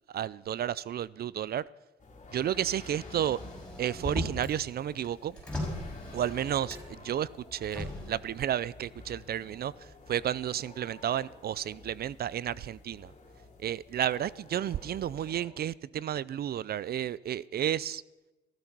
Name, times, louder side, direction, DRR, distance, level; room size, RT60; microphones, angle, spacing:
voice 1, 0.1-1.6 2.3-3.4 3.8-5.4 6.1-9.7 10.1-13.1 13.6-18.0, right 10 dB, 50° right, 0.4 m, -32 dB
sound 1, 2.0-15.4, left 3 dB, 35° left, 3.9 m, -51 dB
Motor vehicle (road), 3.0-4.6 4.9-7.0 7.6-8.1, left 1 dB, 5° left, 6.3 m, -38 dB
15.5 x 14.5 x 6.0 m
cardioid pair, 90°, 20 cm